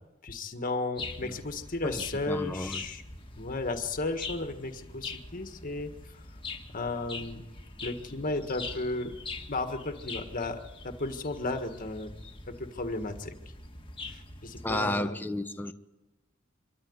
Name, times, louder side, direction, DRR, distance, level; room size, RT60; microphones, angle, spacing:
voice 1, 0.2-3.0 3.3-6.2 6.7-7.4 7.8-9.1 9.5-12.1 12.6-13.3 14.1-15.2, left 2 dB, 40° left, 1.7 m, -34 dB
sound 1, 1.0-14.8, left 3 dB, 25° left, 1.7 m, -43 dB
voice 2, 1.8-2.8 14.6-15.7, left 1 dB, 10° left, 0.9 m, -32 dB
24.5 x 13.5 x 9.6 m
head